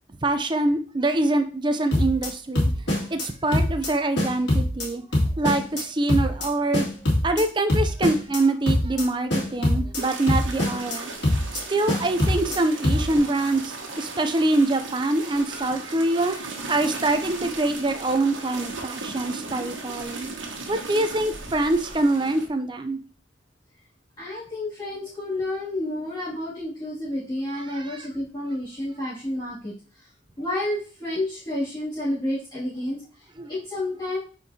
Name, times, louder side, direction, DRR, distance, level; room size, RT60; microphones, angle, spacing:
voice 1, 0.2-2.7 3.1-5.0 5.4-6.9 7.2-11.1 11.5-20.3 20.7-23.0 27.8-28.1 33.4-33.5, right 2 dB, 25° right, 8 dB, 0.5 m, -24 dB
sound 1, 1.9-2.3 2.5-3.2 3.5-3.9 4.2-4.9 5.1-5.8 6.1-6.5 6.7-7.4 7.7-8.4 8.7-9.0 9.3-10.0 10.3-11.0 11.2-11.6 11.9-12.6 12.8-13.2, left 1 dB, 60° left, 2.5 m, -23 dB
sound 2, 9.9-22.5, right 3 dB, 75° right, 1.3 m, -37 dB
voice 2, 24.2-30.1 30.4-34.2, left 1 dB, 20° left, -13 dB, 2.4 m, -30 dB
8.3 x 4.6 x 2.8 m, 0.39 s
head